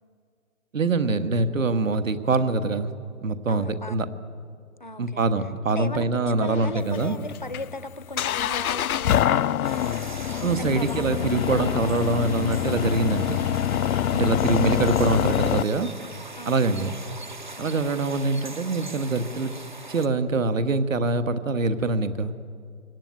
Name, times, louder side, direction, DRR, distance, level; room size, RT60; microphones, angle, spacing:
voice 1, 0.7-2.9 3.2-4.1 5.0-7.1 10.4-13.4 14.1-15.9 16.5-16.9 17.6-19.5 19.9-22.3, right 3 dB, 65° right, 10 dB, 1.6 m, -24 dB
voice 2, 3.5-4.1 4.8-5.3 5.7-10.0 10.3-12.1 16.4-17.0 17.6-17.9, left 2 dB, 35° left, 14 dB, 0.6 m, -38 dB
sound 1, 6.5-15.6, left 11 dB, 85° left, 0.5 m, -25 dB
sound 2, 9.6-20.1, right 2 dB, 35° right, 0.6 m, -40 dB
23.5 x 17.5 x 9.3 m, 2.2 s
hypercardioid pair, 180°, 42 cm